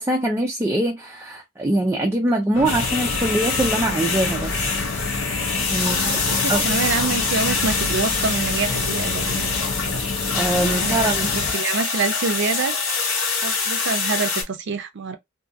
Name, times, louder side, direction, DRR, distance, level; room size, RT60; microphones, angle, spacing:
voice 1, 0.0-4.8 5.7-6.6 10.3-11.3, right 1 dB, 15° right, 0.4 m, -23 dB
sound 1, 2.5-11.5, left 3 dB, 70° left, 0.6 m, -29 dB
sound 2, 2.6-14.4, left 4 dB, 85° left, 1.4 m, -25 dB
voice 2, 5.9-10.0 10.6-12.7 13.4-15.2, right 4 dB, 60° right, 0.5 m, -27 dB
2.6 x 2.4 x 2.6 m
head